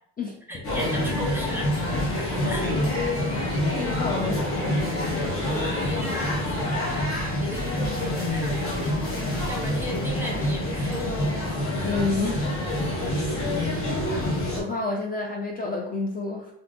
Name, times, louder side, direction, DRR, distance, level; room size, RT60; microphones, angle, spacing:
voice 1, 0.5-1.9 2.2-2.6 5.1-9.0 9.5-11.3, equal, 5° right, 0 dB, 0.8 m, -36 dB
sound 1, 0.6-14.6, left 1 dB, 45° left, 1.0 m, -26 dB
voice 2, 3.7-4.6 11.8-12.5 14.2-16.5, left 3 dB, 30° left, -1 dB, 0.5 m, -29 dB
2.6 x 2.3 x 3.6 m, 0.72 s
cardioid pair, 90°, 30 cm